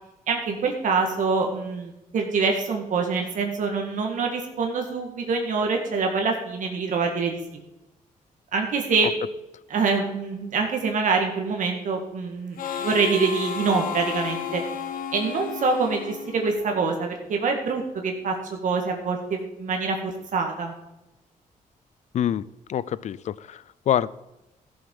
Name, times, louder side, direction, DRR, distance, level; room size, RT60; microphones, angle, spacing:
voice 1, 0.3-7.4 8.5-9.1 9.7-14.6 15.1-20.7, right 4 dB, 65° right, 2 dB, 1.7 m, -25 dB
Harmonica, 12.6-17.0, left 7 dB, 80° left, 1.2 m, -33 dB
voice 2, 22.7-24.1, left 10 dB, 55° left, 20 dB, 0.4 m, -26 dB
14.0 x 7.1 x 5.3 m, 0.93 s
cardioid pair, 130°, 14 cm